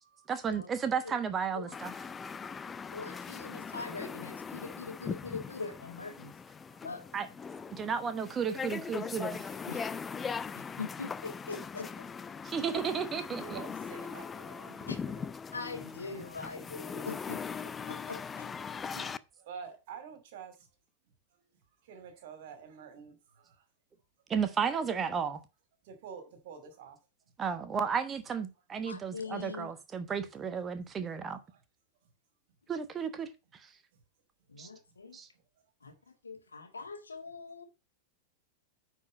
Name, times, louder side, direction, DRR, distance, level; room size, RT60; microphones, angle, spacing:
voice 1, 0.3-1.9 7.1-7.3 7.7-9.6 12.4-13.6 24.3-25.4 27.4-31.4 32.7-33.3 34.6-34.7 35.1-35.3, right 6 dB, 20° right, 1.0 m, -33 dB
sound 1, 1.7-19.2, left 6 dB, 20° left, 0.4 m, -40 dB
voice 2, 2.9-6.4 6.8-7.0 9.7-9.9 10.5-12.0 14.9-15.0 15.5-17.4 17.9-18.5 18.9-19.1 28.8-29.7 34.5-35.2 35.8-35.9 36.2-37.6, left 4 dB, 75° left, 1.7 m, -42 dB
voice 3, 13.3-15.3 19.0-20.7 21.8-23.7 25.8-27.0 31.5-31.6, right 6 dB, 50° right, 2.4 m, -49 dB
9.8 x 4.6 x 5.1 m
figure-of-eight pair, 90°, 0 cm